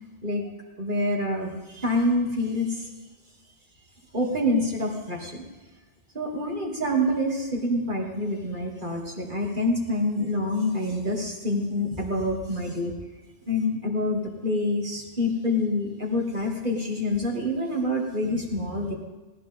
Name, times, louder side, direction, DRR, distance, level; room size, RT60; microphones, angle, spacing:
voice 1, 0.8-2.9 4.1-5.4 6.1-12.9 13.5-18.9, left 1 dB, 45° right, -2 dB, 3.1 m, -26 dB
18.5 x 17.5 x 3.8 m, 1.2 s
omnidirectional pair, 1.1 m